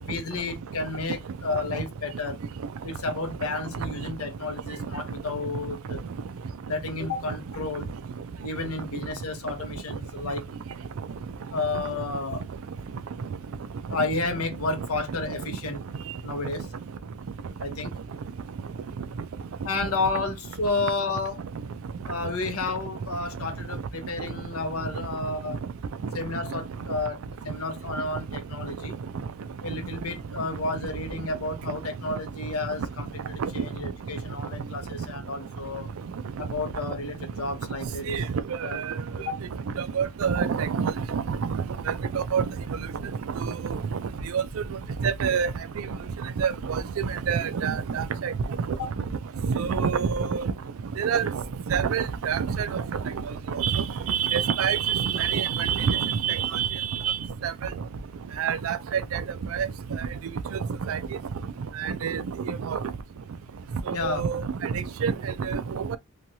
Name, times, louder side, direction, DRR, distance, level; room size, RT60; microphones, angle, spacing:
voice 1, 0.0-2.4 2.8-6.0 6.7-7.9 8.4-10.4 11.5-12.4 13.9-15.8 16.2-16.7 17.6-17.9 19.6-21.4 22.1-25.6 26.1-28.9 29.6-35.9 36.4-38.3 38.6-38.8 39.3-39.4 48.7-48.9 63.9-64.3, left 3 dB, 85° left, 0.8 m, -31 dB
voice 2, 39.8-41.5 42.1-42.4 43.4-43.5 44.3-44.4 45.0-45.5 46.4-46.8 47.3-48.3 49.4-50.4 51.0-51.3 51.7-52.8 53.5-56.7 57.0-57.2 57.4-57.5 58.4-59.2 59.5-59.7 60.9-61.0 61.8-62.8 63.9-65.1 65.5-65.6, right 7 dB, 70° right, 0.4 m, -26 dB
3.0 x 2.3 x 2.6 m
head